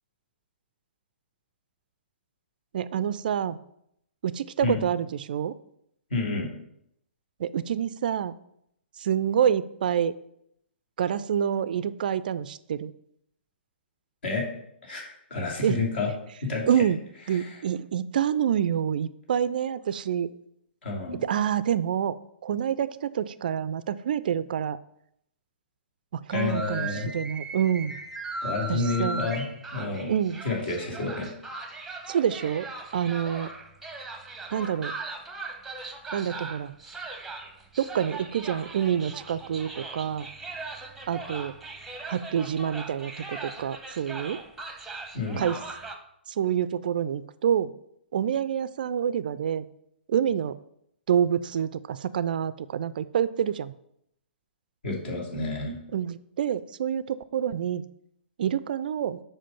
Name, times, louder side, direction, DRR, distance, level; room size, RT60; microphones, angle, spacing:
voice 1, 2.7-3.6 4.2-5.5 7.4-8.3 9.0-10.2 11.0-12.9 15.6-15.8 16.7-17.0 17.3-20.3 21.2-22.1 22.4-24.8 26.1-28.0 28.7-29.3 30.1-30.4 32.1-33.5 34.5-34.9 36.1-36.7 37.8-40.3 41.1-41.6 42.1-44.4 45.4-45.6 46.3-47.7 48.1-49.7 50.1-50.6 51.1-53.7 55.9-57.8 58.4-59.2, right 9 dB, 50° right, 16 dB, 0.3 m, -27 dB
voice 2, 6.1-6.5 14.2-14.4 14.8-16.1 16.4-16.6 17.3-17.5 20.8-21.2 26.3-27.1 28.4-29.4 29.7-30.1 30.4-31.3 45.1-45.4 54.8-55.8, left 3 dB, 60° left, -1 dB, 2.8 m, -29 dB
sound 1, 26.3-46.0, right 3 dB, 5° right, 0.9 m, -39 dB
7.5 x 5.0 x 5.5 m, 0.75 s
figure-of-eight pair, 120°, 6 cm